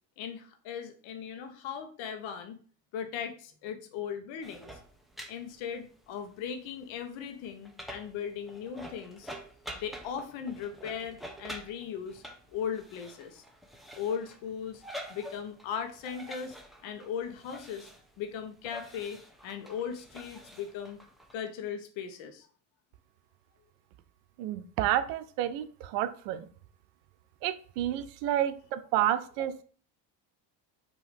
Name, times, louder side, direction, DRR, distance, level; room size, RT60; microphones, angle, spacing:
voice 1, 0.2-2.6 2.9-4.8 5.3-9.3 9.7-12.2 12.5-13.4 13.9-14.8 15.1-16.6 16.8-17.9 18.2-21.0 21.3-22.5, left 7 dB, 65° left, 7 dB, 1.3 m, -38 dB
sound 1, 4.4-21.3, equal, ahead, 1.0 m, -48 dB
voice 2, 24.4-26.5 27.4-29.6, right 12 dB, 80° right, 12 dB, 0.8 m, -30 dB
6.2 x 3.0 x 5.2 m, 0.43 s
supercardioid pair, 100°, 49 cm